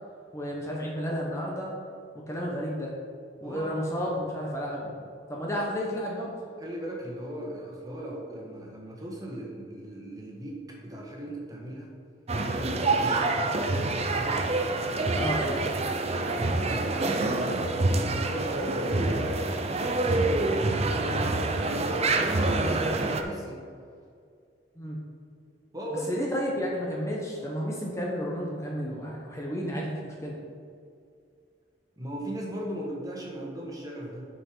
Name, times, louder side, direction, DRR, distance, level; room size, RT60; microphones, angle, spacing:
voice 1, 0.3-1.7 2.3-2.9 3.4-5.0 5.3-6.4 15.1-15.8 24.8-25.0 26.1-30.4, equal, 15° left, -3 dB, 1.1 m, -32 dB
voice 2, 3.4-3.7 6.6-11.9 12.6-13.3 14.1-14.4 16.5-23.6 25.7-26.2 32.0-34.3, right 1 dB, 20° right, -2 dB, 1.7 m, -37 dB
sound 1, 12.3-23.2, right 2 dB, 35° right, 0.7 m, -26 dB
9.5 x 5.7 x 4.7 m, 2.3 s
head